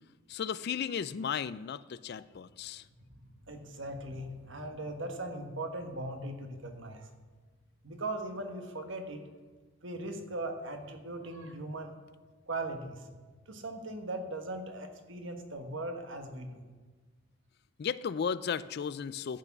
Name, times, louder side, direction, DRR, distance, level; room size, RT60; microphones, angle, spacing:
voice 1, 0.3-2.8 17.8-19.4, left 7 dB, 45° left, 16 dB, 0.3 m, -35 dB
voice 2, 3.4-7.1 7.8-9.2 9.8-12.0 12.5-13.1 13.5-16.6, right 2 dB, 55° right, 5 dB, 1.4 m, -39 dB
12.0 x 8.5 x 5.9 m, 1.4 s
head